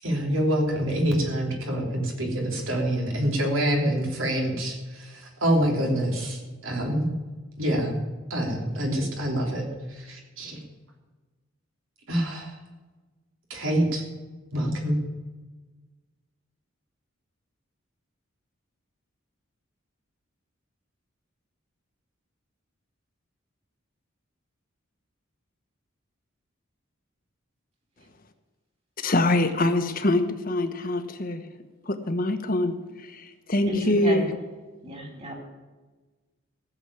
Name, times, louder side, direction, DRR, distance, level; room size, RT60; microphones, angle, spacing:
voice 1, 0.0-7.1 7.6-8.0 8.3-9.7 10.0-10.6 12.1-12.5 13.5-14.0 14.5-15.0, equal, 75° right, 1 dB, 3.3 m, -26 dB
voice 2, 29.0-31.4 31.9-34.3, left 1 dB, 45° left, 8 dB, 1.2 m, -24 dB
voice 3, 33.7-34.3 34.8-35.3, equal, 30° right, 2 dB, 3.6 m, -32 dB
15.0 x 7.3 x 8.6 m, 1.3 s
head